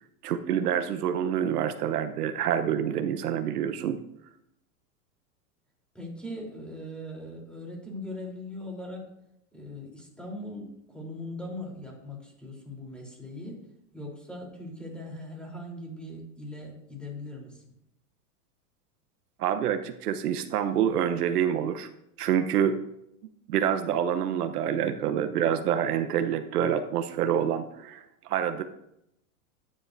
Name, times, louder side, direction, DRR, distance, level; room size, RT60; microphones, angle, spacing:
voice 1, 0.2-4.0 19.4-21.9 22.2-22.8 23.5-28.6, right 9 dB, 85° right, 8 dB, 1.0 m, -27 dB
voice 2, 5.9-9.1 9.5-13.6 13.9-17.6, left 1 dB, ahead, -1 dB, 3.5 m, -40 dB
14.5 x 10.0 x 2.6 m, 0.79 s
supercardioid pair, 125°, 45 cm